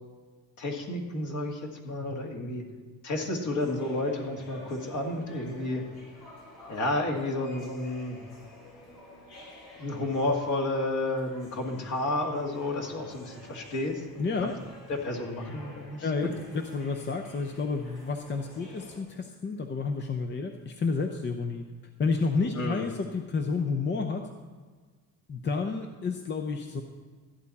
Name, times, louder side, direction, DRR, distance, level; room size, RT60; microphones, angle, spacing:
voice 1, 0.6-2.6 3.0-5.8 6.7-8.2 9.8-14.0 14.4-14.5 14.9-16.1 22.5-22.8, left 2 dB, 50° left, 1 dB, 2.0 m, -31 dB
sound 1, 3.4-19.0, left 1 dB, 80° left, 3.8 m, -51 dB
voice 2, 14.2-14.5 16.0-21.6 22.0-24.3 25.3-26.8, left 4 dB, 30° left, 3 dB, 0.7 m, -30 dB
14.0 x 8.5 x 4.2 m, 1.5 s
cardioid pair, 115°, 37 cm